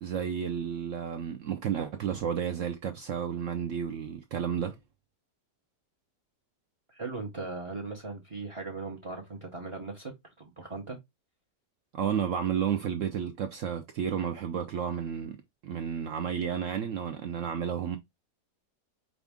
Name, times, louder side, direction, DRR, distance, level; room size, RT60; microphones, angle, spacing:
voice 1, 0.0-4.8 11.9-15.4 15.6-18.0, right 8 dB, 80° right, 0.7 m, -32 dB
voice 2, 6.9-11.0, right 3 dB, 35° right, 0.5 m, -39 dB
5.1 x 2.5 x 3.4 m
omnidirectional pair, 1.9 m